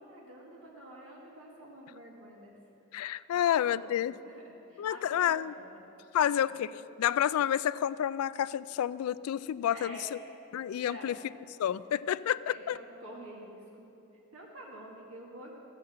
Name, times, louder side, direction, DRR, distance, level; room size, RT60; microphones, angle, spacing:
voice 1, 0.0-2.5 3.0-5.8 6.2-6.6 9.7-10.1 10.9-11.2 12.0-12.2 12.4-13.9 14.3-15.5, right 1 dB, 70° right, -2 dB, 1.7 m, -49 dB
voice 2, 2.9-4.1 4.8-5.5 6.1-6.7 7.0-10.0 10.5-11.1 11.6-12.8, left 10 dB, 80° left, 17 dB, 0.3 m, -29 dB
13.5 x 7.5 x 7.6 m, 2.7 s
head